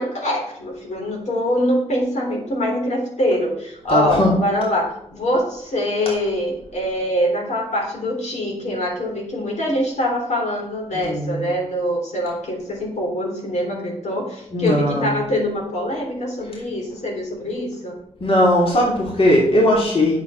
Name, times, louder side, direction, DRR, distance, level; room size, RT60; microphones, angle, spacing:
voice 1, 0.0-18.0, left 1 dB, 70° left, -1 dB, 3.6 m, -24 dB
voice 2, 3.9-4.3 10.9-11.5 14.5-15.2 18.2-20.2, left 1 dB, 50° left, -3 dB, 3.1 m, -18 dB
8.5 x 7.3 x 5.9 m, 0.74 s
cardioid pair, 80°, 12 cm